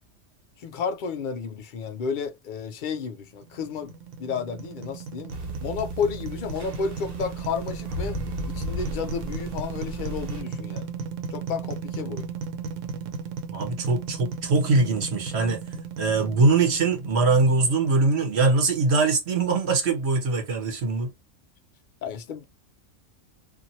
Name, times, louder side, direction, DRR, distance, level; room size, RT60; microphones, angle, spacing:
voice 1, 0.6-3.9 4.2-5.3 5.6-8.2 8.5-10.8 11.3-12.3 22.0-22.4, left 6 dB, 60° left, 0.5 m, -31 dB
sound 1, 3.4-18.6, right 5 dB, 80° right, 1.0 m, -36 dB
sound 2, 5.3-10.4, equal, 40° right, 0.8 m, -36 dB
voice 2, 13.5-15.6 16.0-21.1, right 3 dB, 60° right, 1.1 m, -22 dB
2.7 x 2.5 x 2.6 m
omnidirectional pair, 1.3 m